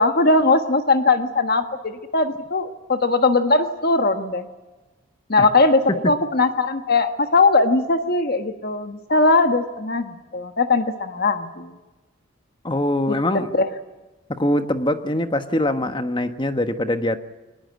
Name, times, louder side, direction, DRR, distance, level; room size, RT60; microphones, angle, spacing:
voice 1, 0.0-4.4 5.3-11.7 13.1-13.2 13.5-13.7, left 3 dB, 50° left, 7 dB, 1.4 m, -19 dB
voice 2, 12.6-13.5 14.3-17.2, left 1 dB, 25° left, 8 dB, 1.3 m, -23 dB
23.5 x 20.0 x 9.4 m, 1.1 s
head